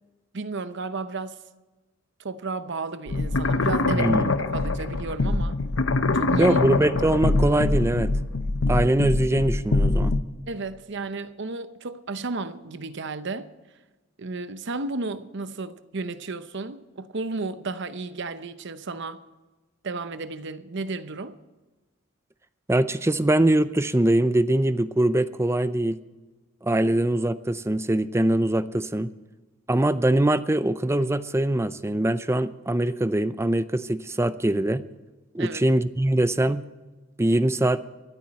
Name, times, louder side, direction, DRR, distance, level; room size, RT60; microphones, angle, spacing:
voice 1, 0.3-1.4 2.2-4.2 4.5-5.6 6.1-6.6 7.2-7.4 10.5-13.5 14.2-19.2 19.8-21.4 35.4-35.6, right 3 dB, 60° right, 0.8 m, -33 dB
sound 1, 3.1-10.2, left 2 dB, 75° left, 0.9 m, -24 dB
voice 2, 3.9-4.3 6.4-8.1 8.7-10.1 22.7-26.0 26.6-29.1 29.7-34.9 35.3-36.6 37.2-37.8, right 1 dB, 15° right, 0.5 m, -22 dB
24.0 x 8.9 x 4.2 m
head